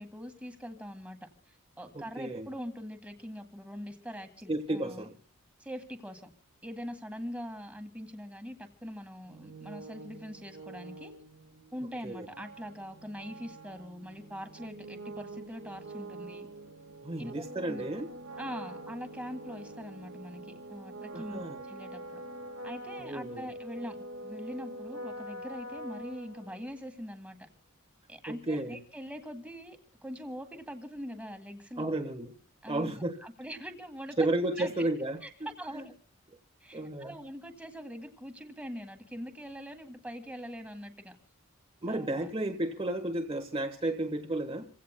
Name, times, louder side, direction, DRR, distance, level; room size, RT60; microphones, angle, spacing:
voice 1, 0.0-5.1 5.6-6.3 6.6-11.1 11.7-16.5 17.2-17.9 18.4-22.2 22.6-24.0 24.2-27.4 28.1-32.0 32.6-34.3 34.6-34.9 35.2-35.3 35.6-35.9 36.6-41.2 41.9-42.3, equal, 5° right, 6 dB, 1.9 m, -43 dB
voice 2, 1.9-2.5 4.5-5.1 12.0-12.3 17.0-18.1 21.1-21.6 23.0-23.5 28.3-28.8 31.8-32.3 32.7-33.2 34.2-35.2 35.7-35.9 36.7-37.1 41.8-44.7, right 1 dB, 25° right, 3 dB, 1.3 m, -32 dB
sound 1, 9.3-26.9, right 1 dB, 70° right, 1.6 m, -45 dB
28.5 x 16.5 x 2.2 m, 0.39 s
head